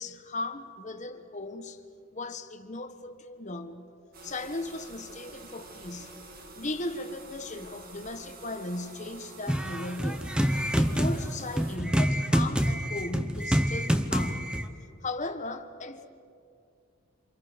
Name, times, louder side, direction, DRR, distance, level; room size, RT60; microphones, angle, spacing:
voice 1, 0.0-1.8 2.1-3.9 4.2-6.2 6.6-10.3 10.8-14.6 15.0-16.1, left 2 dB, 35° left, 1.2 m, -37 dB
sound 1, 4.1-11.8, right 3 dB, 45° right, 1.9 m, -47 dB
sound 2, 9.5-14.7, equal, 5° right, 0.8 m, -27 dB
28.0 x 27.0 x 5.2 m
head